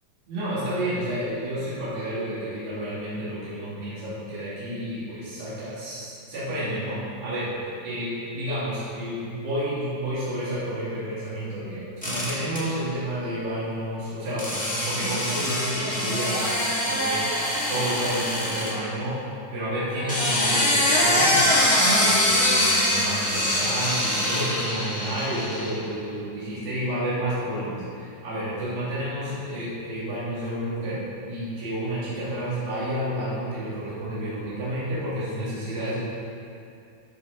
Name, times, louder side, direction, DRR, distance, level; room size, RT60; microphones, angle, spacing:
voice 1, 0.3-14.5 14.8-16.5 16.8-17.3 17.7-19.2 19.5-21.5 21.9-31.0 31.3-36.0, right 1 dB, 80° right, -11 dB, 4.7 m, -30 dB
sound 1, 12.0-12.6 14.4-18.7 19.9-25.7, left 1 dB, 5° left, 0.7 m, -23 dB
13.5 x 6.6 x 3.9 m, 2.5 s
omnidirectional pair, 4.6 m